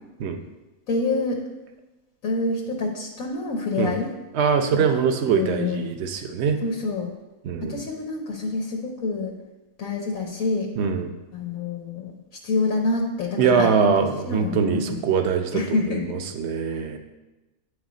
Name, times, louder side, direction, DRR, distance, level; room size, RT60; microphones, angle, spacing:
voice 1, 0.9-1.4 2.2-4.1 4.7-5.8 6.6-7.1 7.6-9.3 9.8-10.7 11.3-12.1 12.4-15.0 15.5-16.0 16.7-17.0, left 3 dB, 90° left, 0 dB, 1.4 m, -27 dB
voice 2, 4.3-6.6 7.4-7.8 10.8-11.1 13.4-17.0, right 6 dB, 60° right, 6 dB, 0.9 m, -23 dB
9.7 x 3.3 x 5.0 m, 1.1 s
omnidirectional pair, 1.4 m